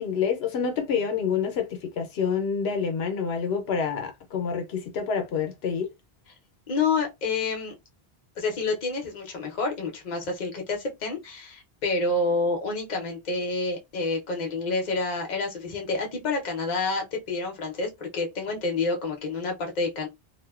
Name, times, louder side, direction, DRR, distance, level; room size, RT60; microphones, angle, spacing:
voice 1, 0.0-5.9, left 6 dB, 80° left, 0.8 m, -27 dB
voice 2, 6.7-7.7 8.4-20.1, left 3 dB, 50° left, 0.8 m, -28 dB
2.5 x 2.1 x 2.3 m
omnidirectional pair, 1.0 m